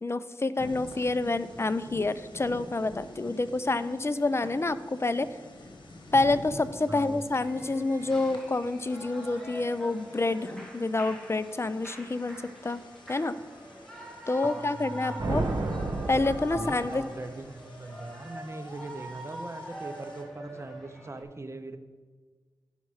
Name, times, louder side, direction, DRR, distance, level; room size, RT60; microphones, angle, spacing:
voice 1, 0.0-5.3 6.1-12.8 13.1-13.3 14.3-15.4 16.1-17.0, left 2 dB, 30° left, 13 dB, 0.5 m, -28 dB
sound 1, 0.6-20.2, left 2 dB, 75° left, 1.5 m, -49 dB
voice 2, 6.9-7.2 14.4-15.2 16.6-21.8, right 2 dB, 35° right, 8 dB, 0.8 m, -40 dB
Shout / Cheering, 7.4-21.2, equal, 5° left, 1.8 m, -44 dB
sound 2, 15.2-17.3, right 2 dB, 60° right, 1.3 m, -31 dB
11.0 x 5.5 x 4.8 m, 1.4 s
cardioid pair, 50°, 8 cm